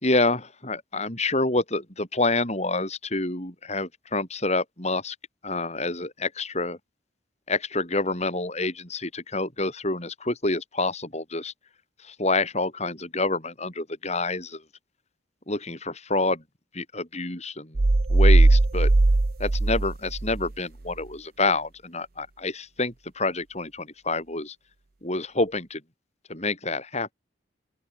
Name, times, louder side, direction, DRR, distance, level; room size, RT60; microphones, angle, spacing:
voice 1, 0.0-5.2 5.4-6.8 7.5-11.5 12.0-14.6 15.5-16.4 16.7-17.8 18.1-18.9 19.4-24.6 25.0-25.8 26.3-27.1, left 2 dB, 35° left, 5.7 m, -27 dB
sound 1, 17.8-20.5, right 2 dB, 50° right, 0.8 m, -19 dB
open air
head